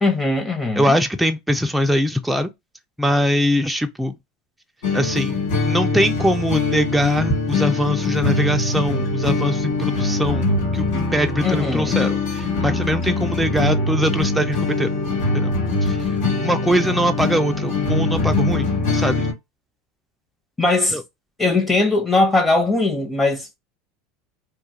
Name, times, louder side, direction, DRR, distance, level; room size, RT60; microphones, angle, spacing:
voice 1, 0.0-1.0 11.4-11.9 20.6-21.0 21.4-23.5, left 2 dB, 15° left, 0.8 m, -20 dB
voice 2, 0.8-2.5 3.0-4.1 4.9-5.4 5.7-14.9 15.3-15.5 15.8-16.0 16.4-19.3 20.9-21.0, equal, 5° right, 0.3 m, -22 dB
sound 1, 4.8-19.3, left 3 dB, 80° left, 1.2 m, -22 dB
2.3 x 2.1 x 2.8 m
supercardioid pair, 120°, 0 cm